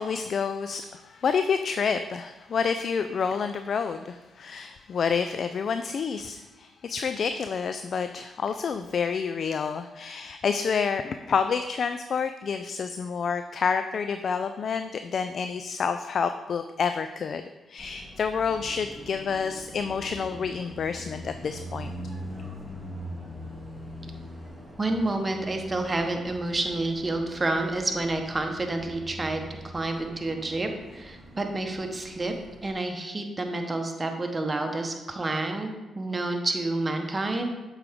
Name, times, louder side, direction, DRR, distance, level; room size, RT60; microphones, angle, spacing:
voice 1, 0.0-21.9, left 6 dB, 60° left, 9 dB, 0.3 m, -29 dB
Car passing by, 17.8-32.7, equal, ahead, 2.0 m, -42 dB
voice 2, 24.8-32.3 32.6-37.6, right 2 dB, 30° right, 4 dB, 1.1 m, -29 dB
7.5 x 4.8 x 3.6 m, 1.1 s
supercardioid pair, 50°, 0 cm